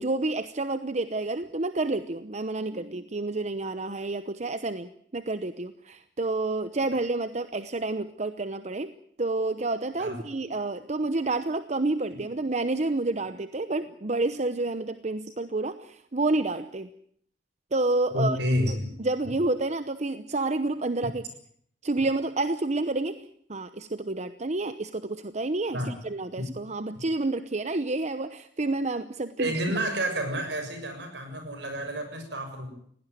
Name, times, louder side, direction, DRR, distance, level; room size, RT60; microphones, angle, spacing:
voice 1, 0.0-8.9 9.2-16.9 17.7-18.4 19.0-21.3 21.8-29.5, right 2 dB, 40° right, 11 dB, 0.9 m, -29 dB
voice 2, 18.1-18.9 25.7-25.9 29.4-32.7, equal, 70° right, 6 dB, 6.8 m, -29 dB
20.5 x 17.5 x 9.3 m, 0.65 s
head